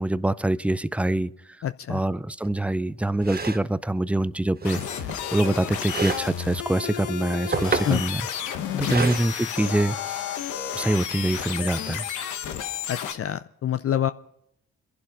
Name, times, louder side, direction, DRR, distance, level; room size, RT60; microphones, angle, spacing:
voice 1, 0.0-1.3 1.9-4.8 5.3-8.2 8.5-10.2 10.7-12.1, right 1 dB, 5° right, 17 dB, 0.5 m, -25 dB
voice 2, 1.6-2.0 7.8-8.0 8.7-9.0 12.9-14.1, left 10 dB, 50° left, 12 dB, 0.5 m, -26 dB
sound 1, 2.4-2.5 3.2-3.7 4.6-5.2 5.9-6.3 7.2-8.0 8.8-9.2, right 4 dB, 30° right, 1.2 m, -30 dB
sound 2, 4.6-13.1, left 9 dB, 80° left, 1.1 m, -32 dB
24.0 x 11.0 x 5.3 m, 0.77 s
supercardioid pair, 50°, 30 cm